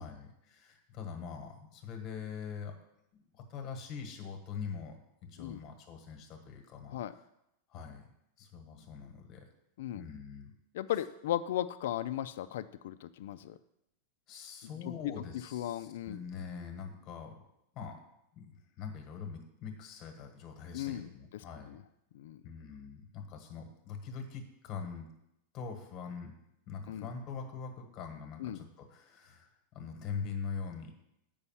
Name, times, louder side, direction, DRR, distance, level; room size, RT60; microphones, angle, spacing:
voice 1, 0.0-2.7 3.1-7.0 7.7-8.0 8.4-9.5 9.9-10.5 14.3-17.4 17.7-18.0 18.3-21.8 22.4-25.1 25.5-26.3 26.7-30.9, left 6 dB, 30° left, 5 dB, 1.3 m, -43 dB
voice 2, 10.7-13.6 14.8-14.9 15.5-16.2 20.7-21.4 21.7-21.8 22.1-22.4 26.9-27.1 28.4-28.6, left 12 dB, 65° left, 11 dB, 0.4 m, -36 dB
8.2 x 5.4 x 5.6 m, 0.83 s
supercardioid pair, 170°, 0 cm